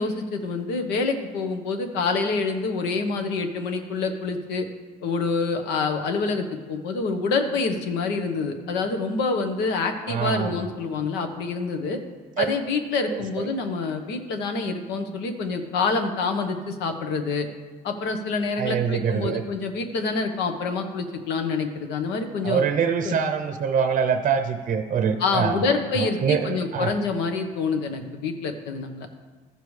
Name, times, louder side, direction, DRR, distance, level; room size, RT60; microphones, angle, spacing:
voice 1, 0.0-4.7 5.0-12.0 12.4-17.5 17.8-22.6 23.0-23.1 25.2-29.1, left 4 dB, 90° left, 6 dB, 1.1 m, -27 dB
voice 2, 10.1-10.7 12.4-12.5 13.1-13.5 18.6-19.4 22.4-26.9, right 6 dB, 50° right, 7 dB, 0.6 m, -25 dB
14.0 x 6.8 x 3.2 m, 1.4 s
cardioid pair, 110°, 17 cm